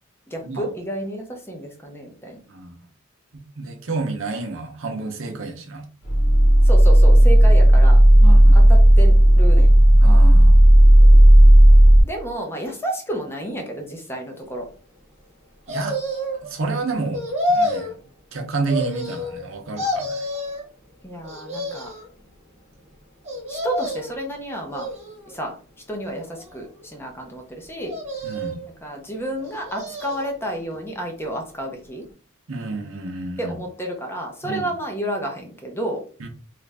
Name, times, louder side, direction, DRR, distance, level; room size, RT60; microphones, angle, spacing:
voice 1, 0.3-2.4 6.6-8.0 8.5-9.7 11.0-11.3 12.1-14.7 21.0-21.9 23.5-24.9 25.3-25.6 25.9-27.9 28.6-32.0 33.4-36.0, right 1 dB, 10° left, 2 dB, 0.6 m, -31 dB
voice 2, 3.3-5.9 8.2-8.7 10.0-10.6 15.7-16.0 16.4-17.9 18.3-20.1 28.2-28.6 32.5-33.6 34.4-34.7 36.2-36.3, right 3 dB, 65° right, 3 dB, 0.7 m, -30 dB
sound 1, 6.1-12.0, right 1 dB, 80° left, 1.2 m, -11 dB
sound 2, 15.7-16.5 17.1-17.9 18.7-19.5 19.8-20.6 21.2-22.1 23.2-24.2 24.7-25.4 26.0-26.8 27.8-28.7 29.4-30.3 30.7-30.8, left 1 dB, 30° right, 0.9 m, -28 dB
3.1 x 2.5 x 3.3 m, 0.39 s
head